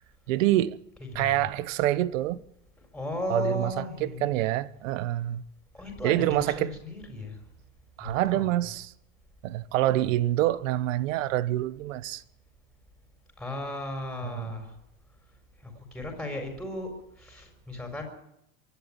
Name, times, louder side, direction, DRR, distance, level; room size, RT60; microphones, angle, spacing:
voice 1, 0.3-0.8 1.1-2.4 3.3-5.4 6.0-6.7 8.0-8.9 9.4-12.2 14.3-14.5, right 15 dB, 70° right, 1.2 m, -26 dB
voice 2, 1.0-1.5 2.9-4.3 5.7-7.4 8.0-8.5 9.8-10.0 13.4-14.8 15.6-18.1, left 1 dB, ahead, 4.4 m, -36 dB
24.0 x 11.5 x 9.9 m
supercardioid pair, 170°, 40 cm